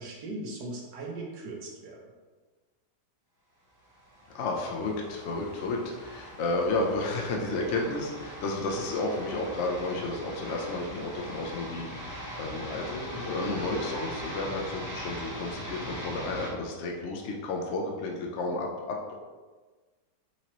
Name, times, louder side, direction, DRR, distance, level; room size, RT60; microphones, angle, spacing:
voice 1, 0.0-2.1, right 2 dB, 80° right, -1 dB, 1.5 m, -39 dB
sound 1, 3.9-16.5, equal, 15° left, 0.6 m, -41 dB
voice 2, 4.3-19.2, left 2 dB, 65° left, 0 dB, 0.7 m, -32 dB
5.9 x 2.9 x 3.0 m, 1.3 s
omnidirectional pair, 1.9 m